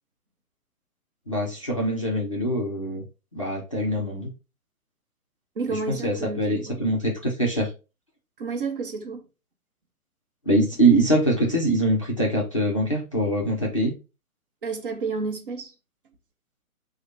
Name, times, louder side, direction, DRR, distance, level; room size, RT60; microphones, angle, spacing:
voice 1, 1.3-3.0 3.3-4.3 5.7-7.7 10.5-13.9, right 1 dB, 25° left, 0.4 m, -23 dB
voice 2, 5.6-6.8 8.4-9.3 14.6-15.7, right 4 dB, 40° right, 0.7 m, -31 dB
6.0 x 2.1 x 2.6 m
figure-of-eight pair, 135°, 43 cm